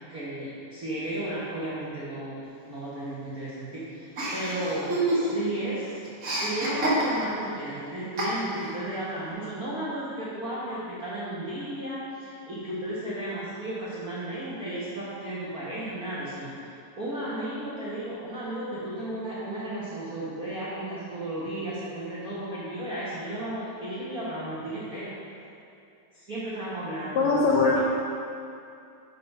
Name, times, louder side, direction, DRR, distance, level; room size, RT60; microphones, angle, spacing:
voice 1, 0.1-16.5 17.0-25.1 26.1-27.4, right 1 dB, 85° right, -9 dB, 0.8 m, -34 dB
Chuckle chortle, 4.2-5.5 5.8-7.5 8.2-8.8, right 1 dB, 40° right, 1.2 m, -28 dB
voice 2, 27.2-27.8, left 3 dB, 80° left, -3 dB, 1.5 m, -21 dB
6.8 x 6.5 x 5.4 m, 2.6 s
omnidirectional pair, 3.9 m